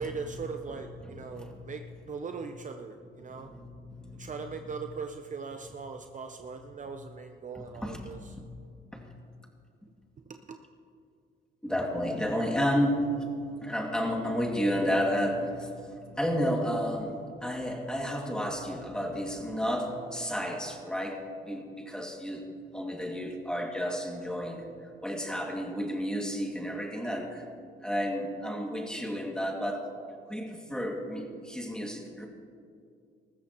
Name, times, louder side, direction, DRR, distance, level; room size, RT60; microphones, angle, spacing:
voice 1, 0.0-3.5 4.2-8.4 10.3-10.6, right 5 dB, 40° right, 5 dB, 0.7 m, -40 dB
voice 2, 0.7-1.7 3.3-4.3 6.8-6.9 7.5-8.4 8.9-9.1 11.6-22.5 22.7-27.4 27.8-29.9 30.3-32.3, equal, 5° left, 0 dB, 2.3 m, -32 dB
20.0 x 14.0 x 3.1 m, 2.3 s
cardioid pair, 90°, 20 cm